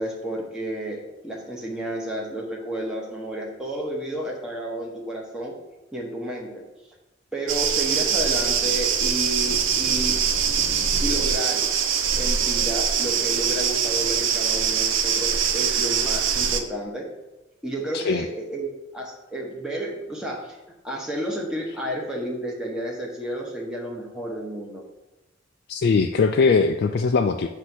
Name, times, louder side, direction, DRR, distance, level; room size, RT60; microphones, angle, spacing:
voice 1, 0.0-5.5 5.9-6.6 7.3-10.2 11.0-11.7 12.2-17.1 17.6-20.6 20.8-24.8, right 1 dB, 5° right, -3 dB, 0.9 m, -31 dB
sound 1, 7.5-16.6, right 7 dB, 85° right, 0.6 m, -23 dB
voice 2, 17.9-18.3 25.7-27.5, left 4 dB, 55° left, 5 dB, 0.3 m, -20 dB
8.0 x 2.8 x 6.0 m, 1.0 s
head